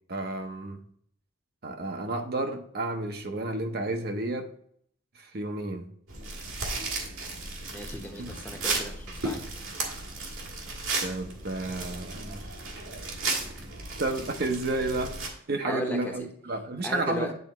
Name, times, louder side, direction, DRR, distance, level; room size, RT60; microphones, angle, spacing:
voice 1, 0.1-0.8 1.6-4.5 5.2-5.9 8.2-8.3 11.0-12.5 14.0-15.1 15.5-17.3, right 2 dB, 50° right, 5 dB, 0.8 m, -31 dB
sound 1, 6.1-15.3, right 3 dB, 90° right, 1.9 m, -34 dB
voice 2, 7.7-9.4 15.6-16.3 16.8-17.3, equal, 10° left, 2 dB, 0.9 m, -36 dB
9.2 x 4.2 x 2.9 m, 0.64 s
head